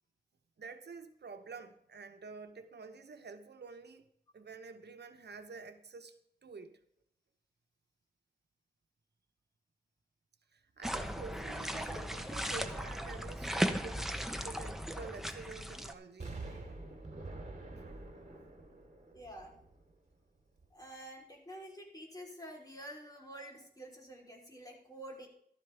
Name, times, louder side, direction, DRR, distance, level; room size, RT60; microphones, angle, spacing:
voice 1, 0.6-4.0 4.3-6.2 6.4-6.8 10.5-16.6, right 4 dB, 80° right, 1.0 m, -49 dB
sound 1, 10.8-15.9, equal, ahead, 1.0 m, -37 dB
Explosion, 16.2-20.1 20.6-20.7, right 2 dB, 45° right, 3.1 m, -47 dB
voice 2, 18.9-19.6 20.7-25.3, right 1 dB, 20° left, 3.7 m, -49 dB
14.0 x 13.0 x 3.4 m
wide cardioid pair, 90°, 17 cm